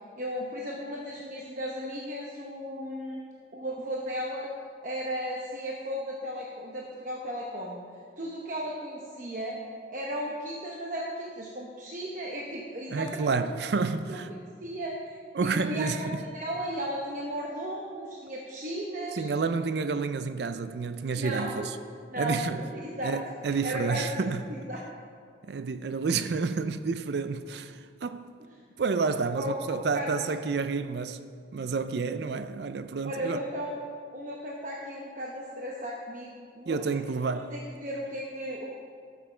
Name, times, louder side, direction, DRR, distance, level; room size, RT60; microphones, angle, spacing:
voice 1, 0.2-4.5 4.8-7.8 8.2-9.6 9.9-13.5 14.1-14.2 14.6-19.3 21.2-21.7 22.1-23.2 23.4-24.8 29.4-29.5 29.9-30.2 33.0-33.8 34.1-36.3 36.6-36.8 37.3-38.7, equal, 45° right, 0.9 m, -35 dB
voice 2, 12.9-14.3 15.3-16.2 19.1-21.8 22.2-22.6 23.0-24.4 25.4-28.3 28.8-31.2 31.5-33.4 36.7-37.5, right 4 dB, 60° right, 0.4 m, -30 dB
12.5 x 7.4 x 4.4 m
head